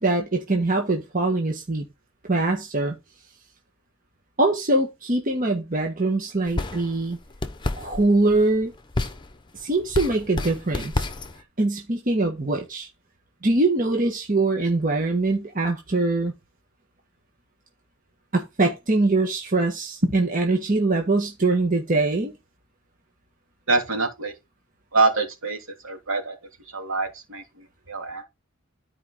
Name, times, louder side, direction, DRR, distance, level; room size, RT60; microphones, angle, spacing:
voice 1, 0.0-1.8 2.3-3.0 4.4-7.2 7.8-8.7 9.6-11.1 11.6-12.9 13.4-16.3 18.3-22.3, right 2 dB, 40° right, 1.4 m, -23 dB
sound 1, 6.5-11.4, left 2 dB, 20° left, 0.9 m, -31 dB
voice 2, 23.7-24.3 24.9-25.6 25.8-26.4 26.7-28.2, right 3 dB, 70° right, 3.0 m, -25 dB
12.5 x 5.0 x 3.8 m
head